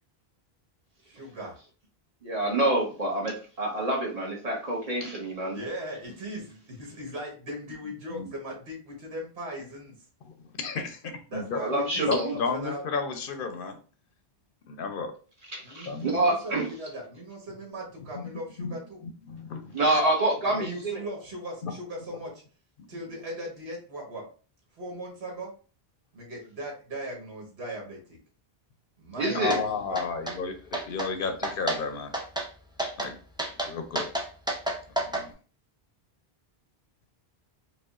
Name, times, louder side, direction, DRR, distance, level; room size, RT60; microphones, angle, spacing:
voice 1, 1.0-1.6 5.5-10.0 11.3-12.8 15.6-19.0 20.4-22.4 22.9-24.3 24.8-25.5 26.1-28.2 29.0-30.0, right 1 dB, 80° right, -2 dB, 1.5 m, -39 dB
voice 2, 2.2-5.6 11.5-12.4 15.5-16.7 19.7-20.7 29.2-29.6, right 1 dB, 40° right, -3 dB, 1.2 m, -27 dB
voice 3, 10.2-11.6 12.1-13.8 14.7-15.1 15.9-16.3 18.1-18.3 18.6-18.8 19.3-20.0 21.6-21.7 22.8-22.9 29.3-32.2 33.0-33.2 33.6-34.1 35.0-35.3, left 5 dB, 60° left, 7 dB, 0.8 m, -33 dB
sound 1, 29.5-29.6 30.0-30.4 30.7-31.1 31.4-31.8 32.1-32.5 32.8-33.1 33.4-35.2, right 1 dB, 10° right, 0.3 m, -30 dB
4.8 x 2.3 x 2.4 m, 0.38 s
omnidirectional pair, 1.1 m